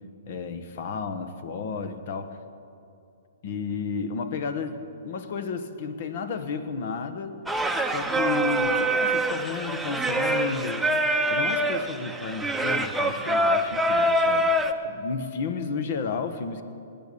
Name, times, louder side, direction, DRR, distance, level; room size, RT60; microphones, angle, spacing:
voice 1, 0.3-2.4 3.4-4.8 5.0-7.4 7.8-10.9 11.3-14.5 14.8-16.6, left 5 dB, 55° left, 10 dB, 1.3 m, -32 dB
Singing, 7.5-14.7, right 1 dB, 5° right, 0.9 m, -25 dB
20.0 x 9.0 x 6.8 m, 2.6 s
hypercardioid pair, 130°, 0 cm